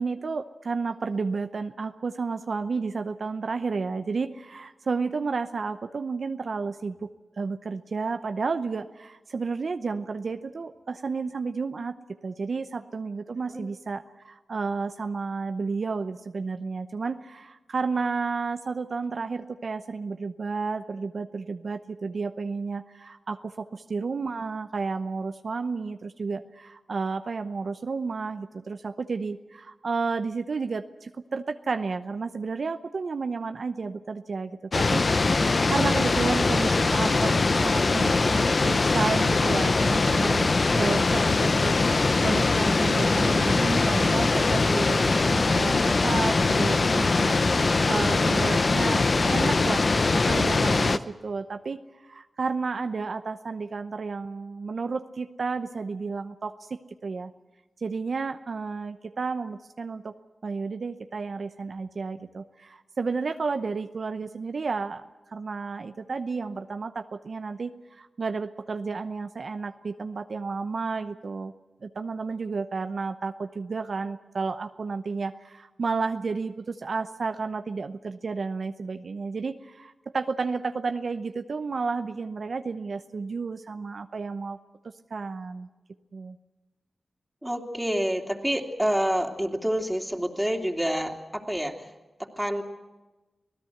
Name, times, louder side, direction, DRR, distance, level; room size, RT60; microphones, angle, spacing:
voice 1, 0.0-7.1 7.4-11.9 12.2-57.3 57.8-60.2 60.4-71.5 71.8-84.6 85.1-85.7 86.1-86.4, right 4 dB, 65° right, 8 dB, 0.7 m, -32 dB
sound 1, 34.7-51.0, left 3 dB, 55° left, 0.8 m, -22 dB
voice 2, 87.4-91.9 92.2-92.6, equal, 5° right, 2 dB, 3.0 m, -28 dB
25.5 x 16.5 x 7.9 m, 1.1 s
cardioid pair, 45°, 0 cm